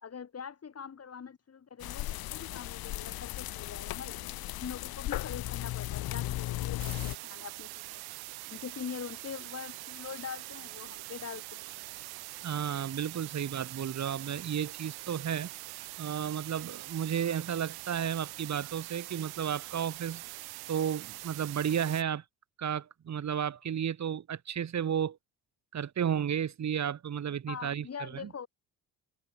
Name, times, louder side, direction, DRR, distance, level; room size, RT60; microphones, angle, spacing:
voice 1, 0.0-8.0 8.5-11.7 27.5-28.5, left 7 dB, 40° left, 3.9 m, -43 dB
sound 1, 1.8-7.2, left 15 dB, 75° left, 1.9 m, -36 dB
sound 2, 6.8-22.0, right 21 dB, 85° right, 1.0 m, -44 dB
voice 2, 12.4-15.5 16.0-20.2 20.7-22.2 22.6-25.2 25.7-28.5, right 8 dB, 45° right, 2.3 m, -33 dB
cardioid pair, 85°, 37 cm